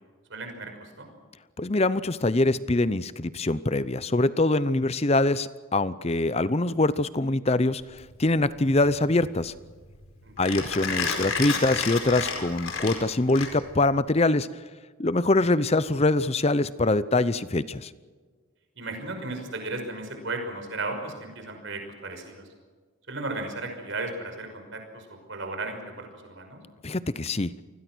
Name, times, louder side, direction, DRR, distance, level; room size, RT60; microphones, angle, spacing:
voice 1, 0.3-1.1 10.2-10.6 18.8-22.5 23.1-26.6, right 2 dB, 60° right, 4 dB, 5.7 m, -35 dB
voice 2, 1.6-7.8 8.2-9.5 10.4-14.5 15.0-17.9 26.8-27.5, left 2 dB, 30° left, 16 dB, 0.7 m, -24 dB
Mechanisms, 7.8-13.9, left 5 dB, 75° left, 4.9 m, -32 dB
28.5 x 21.0 x 6.2 m, 1.5 s
head